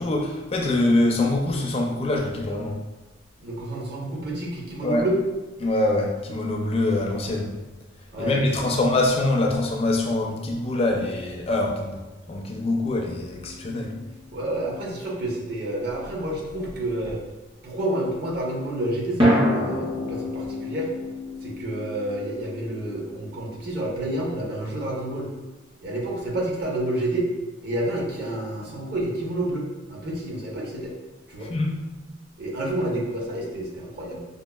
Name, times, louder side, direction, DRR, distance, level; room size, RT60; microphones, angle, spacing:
voice 1, 0.0-2.7 4.8-5.1 5.6-7.5 8.2-12.0 12.3-13.9 31.4-31.8, left 2 dB, 30° left, 0 dB, 0.4 m, -24 dB
voice 2, 3.4-5.2 8.1-8.4 8.7-8.8 14.3-17.2 17.6-20.9 21.4-25.3 25.8-27.3 27.6-30.9 31.3-31.5 32.4-34.2, right 1 dB, 55° right, -2 dB, 0.8 m, -29 dB
sound 1, 13.2-14.3 19.2-23.5, equal, 25° right, 0.6 m, -27 dB
5.2 x 2.3 x 2.3 m, 1.1 s
head